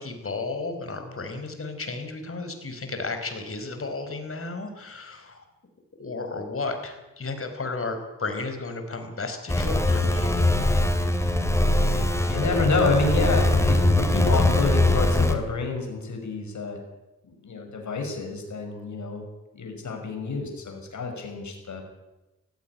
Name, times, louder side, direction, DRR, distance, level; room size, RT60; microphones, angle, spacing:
voice 1, 0.0-5.4 6.0-10.5, left 3 dB, 45° left, 7 dB, 4.8 m, -33 dB
sound 1, 9.5-15.4, left 1 dB, 10° left, 2.9 m, -22 dB
voice 2, 12.3-16.8 17.2-19.3 19.5-21.8, left 3 dB, 65° left, 3 dB, 5.9 m, -28 dB
17.0 x 16.0 x 9.9 m, 1.0 s
cardioid pair, 70°, 31 cm